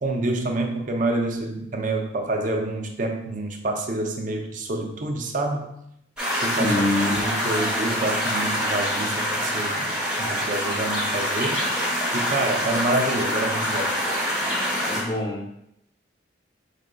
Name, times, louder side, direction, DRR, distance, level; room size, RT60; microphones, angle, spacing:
voice 1, 0.0-5.8 6.4-11.7 12.1-14.0, right 2 dB, 40° right, 3 dB, 0.5 m, -27 dB
sound 1, 6.2-15.0, equal, 5° right, 0.9 m, -25 dB
voice 2, 6.6-7.2 14.9-15.5, left 1 dB, 20° left, 0 dB, 0.6 m, -25 dB
5.1 x 4.0 x 2.2 m, 0.77 s
head